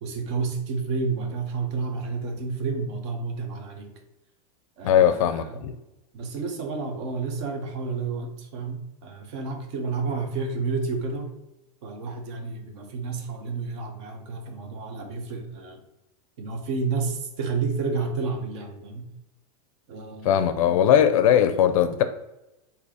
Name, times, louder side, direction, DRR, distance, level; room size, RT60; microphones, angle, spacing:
voice 1, 0.0-3.9 4.8-5.6 6.1-11.3 11.8-15.8 16.4-19.1 19.9-20.9, right 4 dB, 45° right, 4 dB, 0.8 m, -30 dB
voice 2, 4.8-5.7 20.2-22.0, left 9 dB, 60° left, 10 dB, 0.4 m, -19 dB
4.0 x 2.8 x 4.8 m, 0.94 s
supercardioid pair, 175°, 19 cm